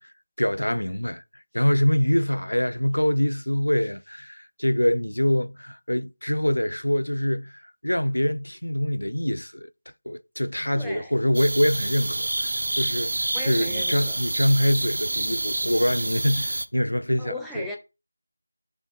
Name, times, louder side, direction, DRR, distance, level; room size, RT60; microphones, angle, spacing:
voice 1, 0.0-9.7 10.1-17.7, equal, 75° left, 0.5 m, -25 dB
voice 2, 10.7-11.1 13.3-14.2 17.2-17.8, left 1 dB, ahead, 0.5 m, -36 dB
sound 1, 11.3-16.7, right 2 dB, 45° right, 0.6 m, -28 dB
6.5 x 3.3 x 5.7 m
figure-of-eight pair, 165°, 0 cm